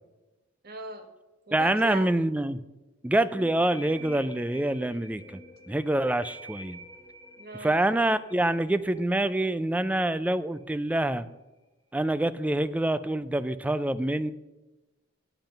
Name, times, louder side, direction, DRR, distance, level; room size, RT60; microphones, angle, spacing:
voice 1, 0.6-1.1 1.5-2.1 7.4-7.8, right 2 dB, 50° right, 6 dB, 1.2 m, -39 dB
voice 2, 1.5-2.6 3.0-5.4 5.7-6.8 7.6-11.3 11.9-14.3, right 1 dB, 5° right, 14 dB, 0.3 m, -26 dB
sound 1, 3.3-10.7, right 1 dB, 15° left, 1.2 m, -48 dB
9.0 x 7.8 x 5.2 m, 1.1 s
head